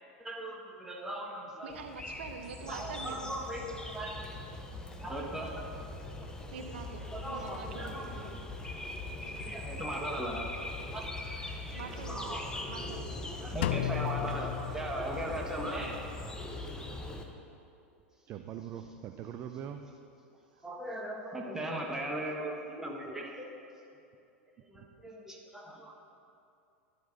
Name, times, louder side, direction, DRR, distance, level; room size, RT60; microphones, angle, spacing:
voice 1, 0.2-1.9 2.7-4.3 5.0-5.6 5.9-6.1 7.1-8.5 9.4-10.5 10.8-13.0 13.3-16.0 20.6-23.5 24.7-25.9, right 1 dB, 10° right, -1 dB, 1.5 m, -39 dB
voice 2, 1.6-3.3 3.6-3.7 6.5-7.0 7.3-8.3 11.7-12.4 12.7-13.0 15.8-16.0 20.5-20.8, right 5 dB, 65° right, 5 dB, 0.7 m, -45 dB
sound 1, 1.7-17.2, left 2 dB, 10° left, 0.9 m, -41 dB
Drum, 13.6-15.5, left 14 dB, 55° left, 0.4 m, -34 dB
voice 3, 18.3-19.9 24.8-24.9, right 9 dB, 35° right, 7 dB, 0.5 m, -42 dB
12.0 x 11.5 x 2.7 m, 2.6 s
figure-of-eight pair, 90°, 7 cm